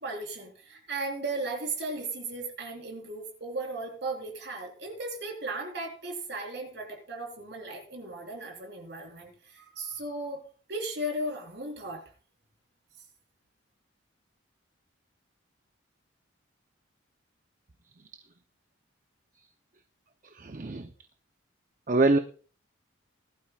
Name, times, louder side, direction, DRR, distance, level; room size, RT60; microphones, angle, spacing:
voice 1, 0.0-10.4 10.7-12.0, right 2 dB, 60° right, 2 dB, 3.8 m, -36 dB
voice 2, 20.4-20.9 21.9-22.2, right 2 dB, 40° right, 7 dB, 0.6 m, -24 dB
19.5 x 12.0 x 2.3 m, 0.40 s
head